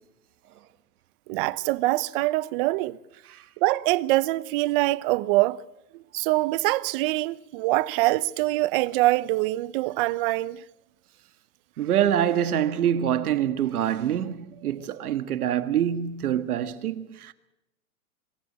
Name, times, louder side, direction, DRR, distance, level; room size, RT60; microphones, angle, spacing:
voice 1, 1.3-3.0 3.6-5.6 6.1-10.6, right 19 dB, 40° right, 0.8 m, -24 dB
voice 2, 11.8-17.3, right 10 dB, 80° right, 1.8 m, -25 dB
25.5 x 15.5 x 8.2 m
hypercardioid pair, 145°, 44 cm